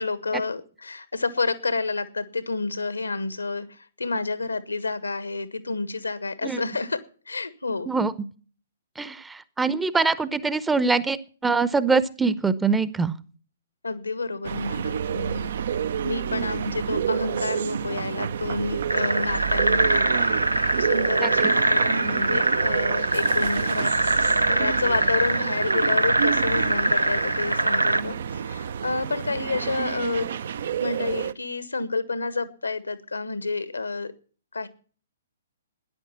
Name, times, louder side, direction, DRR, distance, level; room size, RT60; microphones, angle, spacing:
voice 1, 0.0-7.9 13.8-15.5 16.0-20.5 20.8-23.9 24.5-30.3 30.8-34.1 34.5-34.7, left 3 dB, 75° left, 14 dB, 1.4 m, -29 dB
voice 2, 9.0-11.2 11.4-13.1 21.2-21.3, right 4 dB, 10° right, 16 dB, 0.8 m, -23 dB
sound 1, 14.4-31.3, right 8 dB, 55° right, 0.6 m, -29 dB
sound 2, 18.9-28.0, right 1 dB, 85° right, 0.8 m, -23 dB
13.5 x 10.5 x 5.8 m, 0.41 s
figure-of-eight pair, 120°, 0 cm